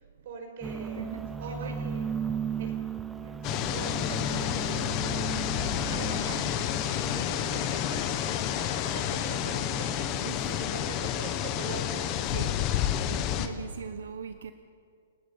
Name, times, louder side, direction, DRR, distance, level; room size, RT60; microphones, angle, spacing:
voice 1, 0.2-1.0 1.4-2.1 2.6-2.7 3.2-6.5 7.0-10.1 10.5-12.2, right 4 dB, 55° right, 5.2 m, -43 dB
sound 1, 0.6-10.8, right 7 dB, 10° right, 0.6 m, -37 dB
voice 2, 0.9-1.3 1.6-1.9 10.2-10.5 12.3-12.7 13.0-14.5, right 6 dB, 85° right, 1.0 m, -40 dB
sound 2, 3.4-13.5, left 10 dB, 30° left, 1.4 m, -30 dB
sound 3, 4.1-9.4, left 7 dB, 80° left, 0.9 m, -41 dB
29.5 x 17.5 x 5.5 m
hypercardioid pair, 155°, 0 cm